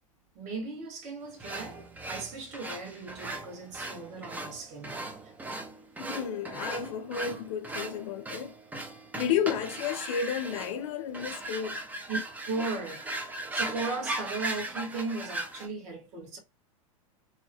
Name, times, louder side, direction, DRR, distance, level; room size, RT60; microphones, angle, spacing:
voice 1, 0.3-5.0 12.1-12.2 12.5-13.0 13.5-16.4, right 3 dB, 40° right, 1.1 m, -37 dB
sound 1, 1.4-15.7, right 2 dB, 10° right, 0.4 m, -38 dB
voice 2, 6.0-8.5 9.1-11.8, left 8 dB, 65° left, 0.6 m, -32 dB
2.8 x 2.1 x 2.7 m
hypercardioid pair, 105°, 18 cm